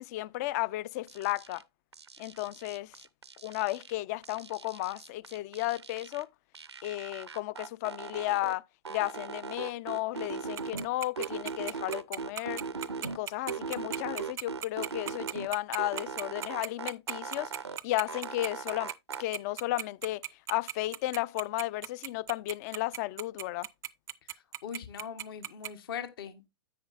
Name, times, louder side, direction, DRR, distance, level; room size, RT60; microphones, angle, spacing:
voice 1, 0.0-1.6 2.2-2.9 3.4-6.3 6.8-8.6 8.9-12.6 13.0-17.5 17.8-18.9 19.2-20.2 20.5-23.7, left 17 dB, 40° left, 0.4 m, -33 dB
sound 1, 1.1-1.6 1.9-3.9 4.2-6.2 6.5-8.6 8.8-10.9 11.2-13.2 13.5-15.5 15.8-17.8 18.1-19.2, right 5 dB, 90° right, 0.6 m, -39 dB
Tick-tock, 10.6-25.7, right 12 dB, 20° right, 0.4 m, -36 dB
voice 2, 24.3-26.5, left 8 dB, 60° left, 1.1 m, -41 dB
10.0 x 8.2 x 2.4 m
figure-of-eight pair, 110°, 14 cm